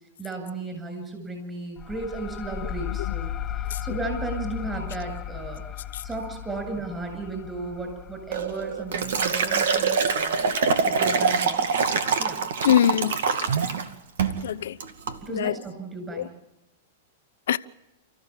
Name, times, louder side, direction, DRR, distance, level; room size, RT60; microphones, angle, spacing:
voice 1, 0.2-3.3 3.6-5.6 6.0-10.6 10.8-11.7 12.1-12.4 15.2-16.3, right 3 dB, 15° right, 7.7 m, -35 dB
sound 1, 1.8-11.0, left 11 dB, 25° left, 1.1 m, -36 dB
Liquid, 8.3-13.9 14.2-14.4 14.8-15.2, right 5 dB, 75° right, 2.2 m, -24 dB
voice 2, 12.6-13.2 14.4-14.8 15.3-15.6 16.1-16.3 17.5-17.6, left 10 dB, 75° left, 0.9 m, -23 dB
29.5 x 14.5 x 7.5 m
hypercardioid pair, 135°, 0 cm